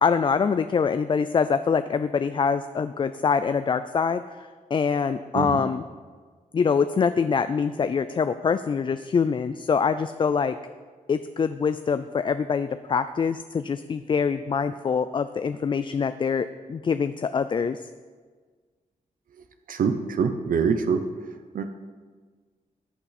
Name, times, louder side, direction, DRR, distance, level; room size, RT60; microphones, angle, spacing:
voice 1, 0.0-5.8 6.5-10.6 11.1-17.8, left 6 dB, 35° left, 11 dB, 0.4 m, -24 dB
voice 2, 19.7-21.0 21.5-21.7, right 6 dB, 75° right, 8 dB, 0.8 m, -24 dB
14.5 x 8.5 x 4.2 m, 1.5 s
wide cardioid pair, 110°, 14 cm